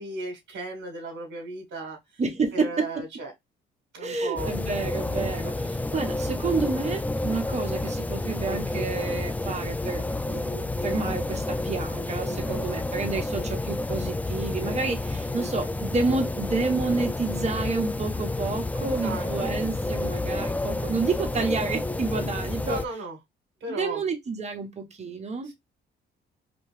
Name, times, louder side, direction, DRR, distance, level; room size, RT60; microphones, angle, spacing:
voice 1, 0.0-2.2 2.5-3.3 3.9-4.5 12.2-12.6 19.0-19.5 22.6-23.2 23.6-24.0 25.4-25.5, right 2 dB, 65° right, 1.4 m, -36 dB
voice 2, 2.2-2.9 4.0-22.8 23.7-25.5, right 4 dB, 35° right, 1.2 m, -30 dB
sound 1, 4.4-22.9, left 2 dB, 10° left, 0.3 m, -30 dB
4.1 x 2.9 x 3.2 m
cardioid pair, 90°, 20 cm